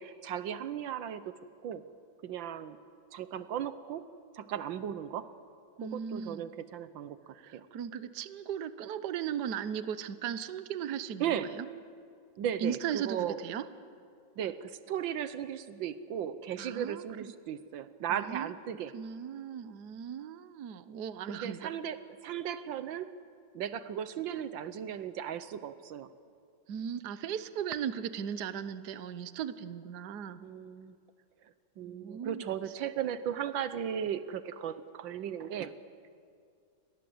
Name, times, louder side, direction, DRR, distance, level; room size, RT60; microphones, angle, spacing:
voice 1, 0.0-1.3 1.6-1.8 2.2-2.8 3.1-4.1 4.3-5.3 5.8-7.7 11.2-11.5 12.4-13.4 14.4-18.9 21.3-23.1 23.5-26.1 30.4-30.9 31.8-35.7, right 9 dB, 80° right, 13 dB, 1.6 m, -36 dB
voice 2, 5.8-6.5 7.4-11.7 12.6-13.2 13.4-13.6 16.6-17.0 18.1-18.5 18.9-21.6 26.7-30.4 31.8-32.5, right 8 dB, 65° right, 13 dB, 1.4 m, -37 dB
30.0 x 23.5 x 7.9 m, 2.3 s
omnidirectional pair, 2.1 m